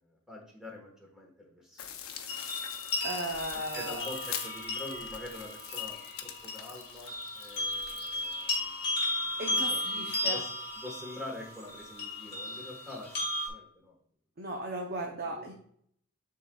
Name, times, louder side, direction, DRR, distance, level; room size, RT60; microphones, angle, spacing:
voice 1, 0.0-1.9 2.9-3.4 3.7-10.5 10.7-13.1 13.4-13.9 15.0-15.5, left 1 dB, ahead, -1 dB, 1.4 m, -46 dB
sound 1, 1.8-8.4, left 9 dB, 80° left, 0.7 m, -43 dB
sound 2, 2.3-13.5, left 2 dB, 25° left, 1.6 m, -35 dB
voice 2, 2.4-2.8 3.0-4.1 9.4-10.4 14.4-15.5, right 2 dB, 45° right, 0 dB, 0.7 m, -37 dB
10.5 x 3.8 x 2.3 m, 0.65 s
head